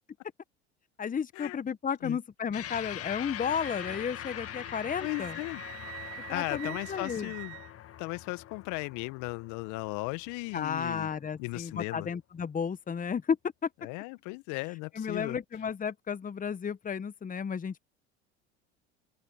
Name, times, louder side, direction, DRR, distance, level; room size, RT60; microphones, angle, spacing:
voice 1, 1.0-5.4 6.3-7.3 10.5-13.4 14.9-17.8, left 7 dB, 25° left, 1.3 m, -33 dB
sound 1, 2.5-11.2, left 12 dB, 45° left, 1.9 m, -43 dB
Wind instrument woodwind instrument, 3.6-8.2, right 29 dB, 65° right, 2.9 m, -46 dB
voice 2, 5.0-5.6 6.3-7.6 8.0-11.1 11.4-12.1 13.8-15.4, left 25 dB, 60° left, 1.3 m, -36 dB
open air
hypercardioid pair, 70°, 33 cm